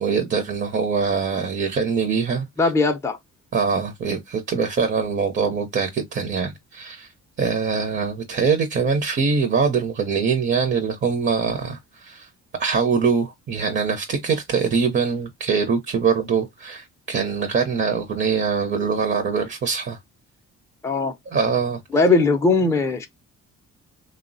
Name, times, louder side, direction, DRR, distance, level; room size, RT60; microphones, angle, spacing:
voice 1, 0.0-2.5 3.5-7.1 7.4-12.3 12.6-20.0 21.3-21.8, right 5 dB, 40° right, 0.6 m, -23 dB
voice 2, 2.6-3.2 20.8-21.1 21.9-23.1, left 3 dB, 10° left, 0.5 m, -19 dB
3.1 x 2.0 x 2.5 m
cardioid pair, 90°, 30 cm